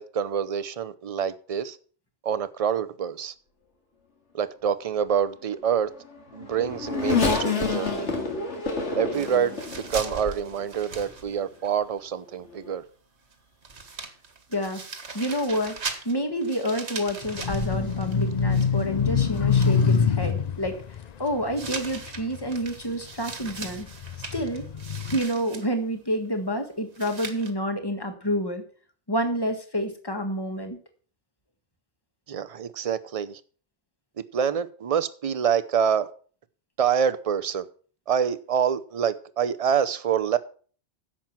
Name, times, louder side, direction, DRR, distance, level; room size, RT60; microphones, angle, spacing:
voice 1, 0.0-1.8 2.2-3.3 4.3-5.9 6.3-8.1 8.9-12.8 32.3-33.4 34.2-36.1 36.8-37.7 38.1-40.4, right 8 dB, 40° right, 0.6 m, -26 dB
Race car auto racing / Accelerating revving vroom, 6.0-10.6 11.3-11.4 12.5-12.7, left 4 dB, 85° left, 2.4 m, -28 dB
sound 1, 9.1-11.7 12.0-12.1 13.3-13.4 13.6-19.0 19.3-20.0 21.6-25.7 26.9-27.5, right 4 dB, 75° right, 1.7 m, -39 dB
voice 2, 14.5-14.8 15.1-15.7 16.0-20.8 21.2-23.9 24.3-24.7 25.0-28.6 29.1-30.8, equal, 20° left, 1.6 m, -28 dB
sound 2, 17.2-22.8 23.3-25.2, left 6 dB, 45° left, 0.6 m, -25 dB
10.5 x 7.5 x 5.9 m
omnidirectional pair, 1.2 m